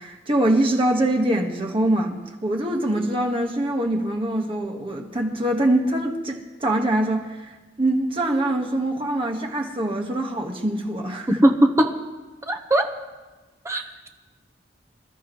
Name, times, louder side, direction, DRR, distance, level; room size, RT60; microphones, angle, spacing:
voice 1, 0.0-11.3, right 1 dB, 30° right, 1 dB, 1.6 m, -24 dB
voice 2, 11.3-12.0 12.5-12.9 13.6-14.1, right 1 dB, 15° right, 4 dB, 1.1 m, -20 dB
26.5 x 13.0 x 3.2 m, 1.2 s
head